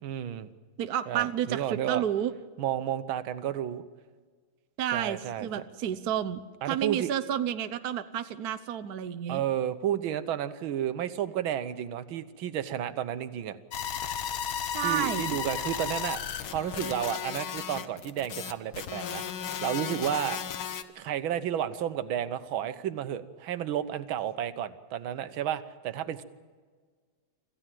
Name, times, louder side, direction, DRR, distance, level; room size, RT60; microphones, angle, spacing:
voice 1, 0.0-0.5 1.1-2.0 2.6-3.8 4.9-5.5 6.6-7.1 9.3-13.6 14.8-16.2 16.5-20.4 21.0-26.2, right 10 dB, 80° right, 12 dB, 1.8 m, -32 dB
voice 2, 0.8-2.3 4.8-6.4 6.7-9.4 14.7-15.4, right 10 dB, 60° right, 10 dB, 1.1 m, -30 dB
sound 1, 13.7-20.8, left 8 dB, 90° left, 1.9 m, -34 dB
26.5 x 15.5 x 7.6 m, 1.5 s
omnidirectional pair, 2.2 m